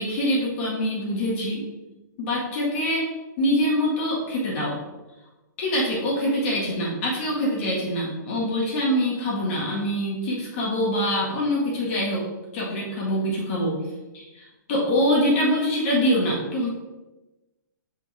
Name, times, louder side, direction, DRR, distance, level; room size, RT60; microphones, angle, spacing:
voice 1, 0.0-1.6 2.2-4.8 5.6-12.3 12.5-13.8 14.1-16.8, equal, 35° left, -3 dB, 1.0 m, -24 dB
5.7 x 2.9 x 3.1 m, 1.1 s
hypercardioid pair, 160°, 11 cm